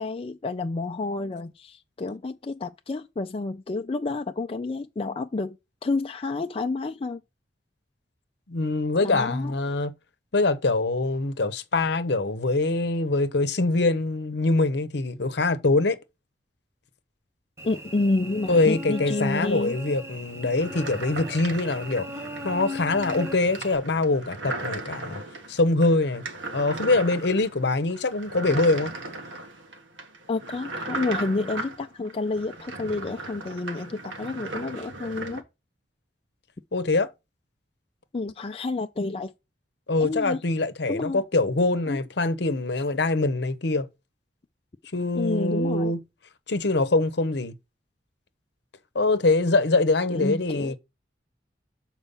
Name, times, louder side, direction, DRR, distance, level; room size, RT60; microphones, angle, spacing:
voice 1, 0.0-5.6 5.8-7.2 9.0-9.5 17.6-19.8 30.3-35.4 38.1-39.3 40.0-40.4 40.9-41.2 41.9-42.0 45.1-45.9 50.1-50.7, left 3 dB, 30° left, 0.4 m, -29 dB
voice 2, 8.5-9.9 10.3-16.0 18.5-25.2 25.5-26.2 26.5-28.9 36.7-37.1 39.9-43.9 44.9-46.0 46.5-47.5 48.9-50.8, left 2 dB, 65° left, 0.9 m, -24 dB
Cricket / Buzz, 17.6-23.8, equal, 15° right, 1.2 m, -38 dB
sound 1, 20.6-35.4, right 2 dB, 85° right, 1.5 m, -37 dB
6.9 x 4.5 x 5.5 m
head